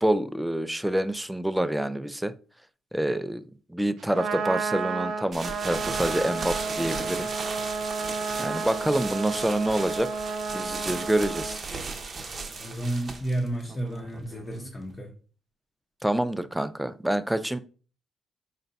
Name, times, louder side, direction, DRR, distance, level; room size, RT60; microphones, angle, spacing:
voice 1, 0.0-2.3 2.9-3.4 3.7-7.3 8.4-10.1 10.5-11.6 16.0-17.6, right 1 dB, 5° right, 0.3 m, -27 dB
Trumpet, 4.0-11.6, right 4 dB, 75° right, 0.6 m, -32 dB
sound 1, 5.3-14.9, right 4 dB, 45° right, 0.8 m, -36 dB
voice 2, 12.4-15.1, right 1 dB, 20° left, 0.8 m, -32 dB
4.1 x 2.2 x 4.0 m
cardioid pair, 90°, 0 cm